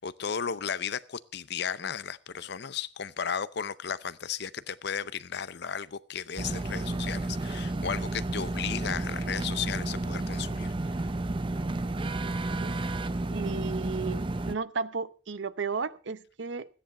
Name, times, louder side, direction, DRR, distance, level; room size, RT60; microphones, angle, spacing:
voice 1, 0.0-10.7, left 7 dB, 65° left, 0.7 m, -34 dB
sound 1, 6.4-14.6, right 2 dB, 25° right, 0.6 m, -32 dB
voice 2, 13.3-16.7, right 4 dB, 80° right, 0.8 m, -34 dB
14.0 x 10.0 x 5.3 m
head